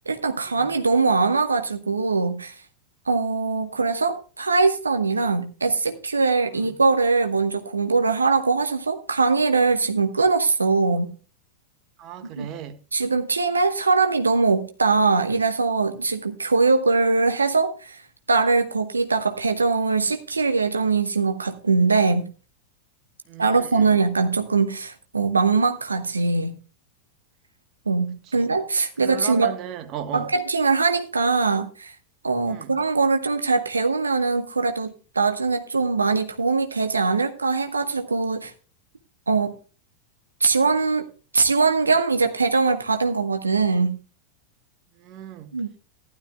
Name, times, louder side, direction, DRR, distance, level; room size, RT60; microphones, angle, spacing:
voice 1, 0.1-2.5 3.1-11.1 12.4-12.5 12.9-18.0 18.3-22.3 23.4-26.5 27.9-29.5 30.1-31.9 32.2-38.5 39.3-39.5 40.4-41.1 41.3-44.0 45.5-45.7, right 4 dB, 75° right, 1.1 m, -22 dB
voice 2, 12.0-12.8 23.3-24.0 28.2-28.5 29.0-30.3 32.5-32.8 45.0-45.6, right 9 dB, 40° right, 1.5 m, -36 dB
15.5 x 12.0 x 2.2 m
figure-of-eight pair, 90°, 0 cm